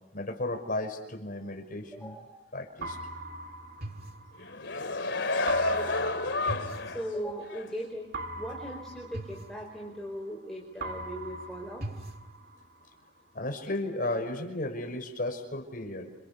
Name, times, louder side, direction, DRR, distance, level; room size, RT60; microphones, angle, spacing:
voice 1, 0.1-2.1 2.5-3.0 13.3-16.1, left 2 dB, 50° left, 5 dB, 5.7 m, -34 dB
voice 2, 1.9-2.4 5.4-6.1 6.8-8.1 8.4-11.8, equal, ahead, -1 dB, 4.6 m, -39 dB
sound 1, 2.8-4.9 5.5-7.6 8.1-10.4 10.8-12.9, right 2 dB, 55° right, 2.2 m, -40 dB
sound 2, 4.4-7.1 7.5-7.6, left 2 dB, 80° left, 2.6 m, -30 dB
29.0 x 29.0 x 6.9 m, 0.98 s
head